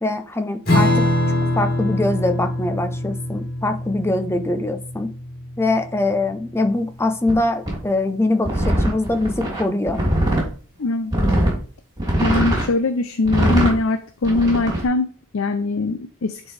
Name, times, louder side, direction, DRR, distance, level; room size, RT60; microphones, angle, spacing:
voice 1, 0.0-5.1 5.6-10.0, left 2 dB, 10° left, 7 dB, 0.7 m, -23 dB
Strum, 0.7-7.5, left 1 dB, 45° left, 3.2 m, -24 dB
sound 1, 7.3-7.4 7.7-7.8 8.4-10.5 11.1-11.6 12.0-12.7 13.2-13.7 14.2-14.8, right 1 dB, 20° right, 3.1 m, -21 dB
voice 2, 10.8-11.1 12.2-16.4, left 3 dB, 65° left, 9 dB, 0.6 m, -22 dB
10.0 x 4.5 x 3.4 m, 0.41 s
head